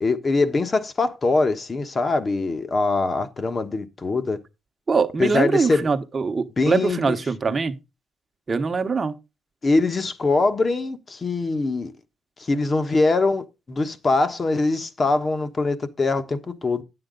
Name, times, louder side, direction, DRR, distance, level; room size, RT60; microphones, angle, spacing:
voice 1, 0.0-4.4 5.2-5.9 6.6-7.1 7.4-7.6 9.6-11.9 12.4-16.8, left 3 dB, 35° left, 1.2 m, -23 dB
voice 2, 4.9-7.7 8.5-9.1, right 4 dB, 35° right, 1.1 m, -23 dB
9.7 x 7.9 x 3.9 m
cardioid pair, 90°, 0 cm